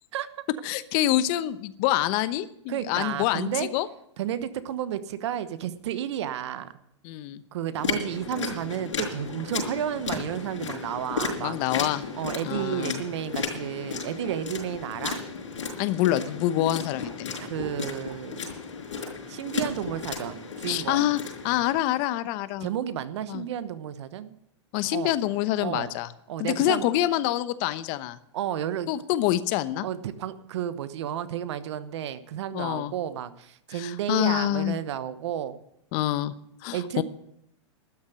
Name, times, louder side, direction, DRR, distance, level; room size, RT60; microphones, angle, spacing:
voice 1, 0.6-3.9 7.0-7.4 11.4-12.0 12.4-13.0 15.8-17.3 20.7-21.2 21.4-22.7 23.3-23.4 24.7-26.1 26.4-28.2 28.9-29.9 32.5-32.9 33.8-34.8 35.9-36.3 36.6-37.0, left 14 dB, 45° left, 14 dB, 0.9 m, -26 dB
voice 2, 2.7-3.7 4.2-6.7 7.5-15.2 17.4-18.4 19.3-21.1 22.6-24.4 24.9-25.1 25.6-25.9 26.3-26.9 28.3-28.9 29.8-35.6 36.7-37.0, right 10 dB, 70° right, 13 dB, 1.0 m, -32 dB
sound 1, 7.8-21.6, left 5 dB, 90° left, 5.1 m, -34 dB
12.5 x 7.2 x 9.3 m, 0.76 s
hypercardioid pair, 125°, 15 cm